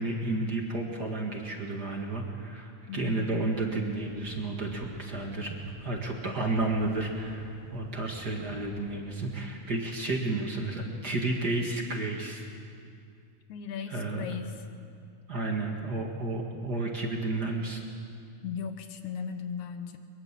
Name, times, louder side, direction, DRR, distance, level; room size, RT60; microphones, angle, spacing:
voice 1, 0.0-12.5 13.9-14.3 15.3-17.8, right 2 dB, 35° right, 1 dB, 2.2 m, -32 dB
voice 2, 2.9-3.2 13.5-14.5 18.4-20.0, left 7 dB, 75° left, 7 dB, 2.6 m, -37 dB
sound 1, 3.2-8.9, equal, 5° left, 3.7 m, -49 dB
23.5 x 23.0 x 7.5 m, 2.4 s
omnidirectional pair, 3.4 m